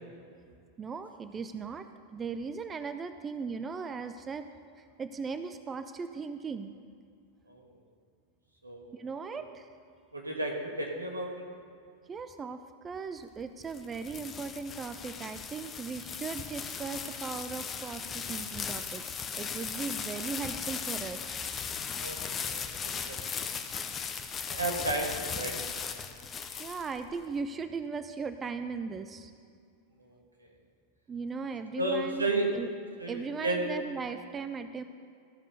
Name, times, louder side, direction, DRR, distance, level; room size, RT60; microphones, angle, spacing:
voice 1, 0.8-1.9 2.1-4.5 4.8-6.7 9.0-9.7 12.1-12.6 12.8-19.0 19.4-21.4 24.8-25.1 26.6-29.3 31.1-32.7 33.1-34.8, right 5 dB, 20° right, 9 dB, 0.4 m, -38 dB
voice 2, 8.6-9.0 10.1-11.3 22.0-22.2 22.5-23.4 24.4-25.8 31.7-32.5 33.0-33.7, right 2 dB, 80° right, 0 dB, 1.4 m, -33 dB
sound 1, 13.4-27.2, left 6 dB, 25° left, 0.6 m, -37 dB
13.5 x 5.4 x 6.5 m, 2.3 s
figure-of-eight pair, 90°, 0 cm